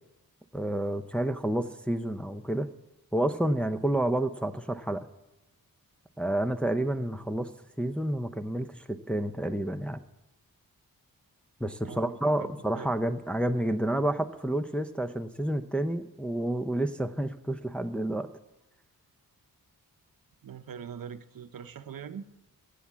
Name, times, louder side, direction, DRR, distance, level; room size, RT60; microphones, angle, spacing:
voice 1, 0.5-2.7 3.1-5.1 6.2-7.5 7.8-10.0 11.6-18.3, right 1 dB, 5° left, 7 dB, 0.5 m, -29 dB
voice 2, 11.8-12.5 12.8-13.0 20.4-22.2, right 7 dB, 65° right, 10 dB, 0.7 m, -42 dB
15.5 x 8.4 x 7.3 m, 1.0 s
wide cardioid pair, 125°, 37 cm